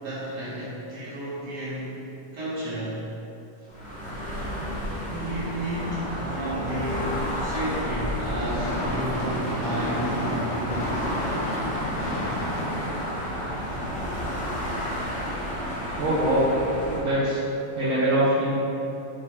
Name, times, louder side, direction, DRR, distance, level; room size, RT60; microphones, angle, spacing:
voice 1, 0.0-3.1 5.1-11.0, right 1 dB, 55° right, -9 dB, 1.3 m, -32 dB
sound 1, 3.7-17.0, equal, 10° left, 0.5 m, -31 dB
Gunshot gunfire / Fireworks, 7.5-13.8, equal, 65° left, 1.0 m, -32 dB
voice 2, 16.0-16.5 16.9-17.4 17.7-18.5, right 1 dB, 70° right, -9 dB, 1.0 m, -23 dB
3.3 x 2.2 x 4.3 m, 2.7 s
omnidirectional pair, 1.4 m